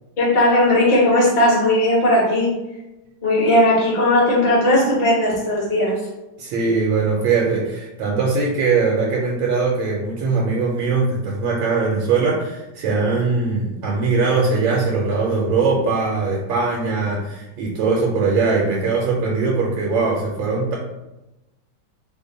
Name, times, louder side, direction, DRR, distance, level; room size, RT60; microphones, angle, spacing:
voice 1, 0.2-2.6 3.2-6.0, left 1 dB, 30° left, -5 dB, 0.9 m, -17 dB
voice 2, 6.4-20.8, right 4 dB, 80° right, -2 dB, 1.4 m, -21 dB
3.3 x 2.2 x 3.8 m, 0.96 s
omnidirectional pair, 2.1 m